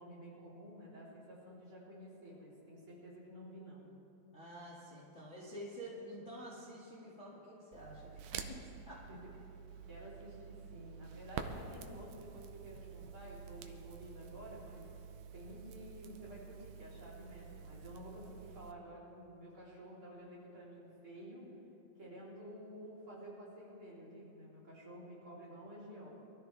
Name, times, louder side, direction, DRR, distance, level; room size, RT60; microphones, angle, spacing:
voice 1, 0.0-3.9 9.1-9.2 9.9-14.9 15.3-21.5 22.0-26.1, equal, 35° right, -7 dB, 4.5 m, -51 dB
voice 2, 4.3-9.2, equal, 25° left, -7 dB, 1.9 m, -49 dB
Crackle, 7.7-18.7, right 7 dB, 75° right, 2.0 m, -49 dB
23.5 x 13.5 x 3.5 m, 2.8 s
omnidirectional pair, 3.9 m